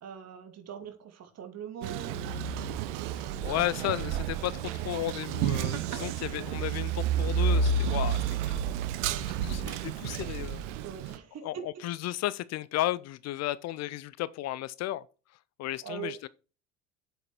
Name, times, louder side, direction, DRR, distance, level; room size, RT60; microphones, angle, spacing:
voice 1, 0.0-2.5 5.9-6.2 9.0-9.2 10.8-11.7 15.8-16.2, right 8 dB, 40° right, 2.5 m, -42 dB
Male speech man speaking, 1.8-11.2, right 6 dB, 65° right, 1.0 m, -30 dB
voice 2, 3.1-8.6 9.2-10.6 11.4-15.0 15.6-16.3, left 15 dB, 45° left, 0.6 m, -34 dB
8.0 x 7.9 x 4.4 m
figure-of-eight pair, 65°, 38 cm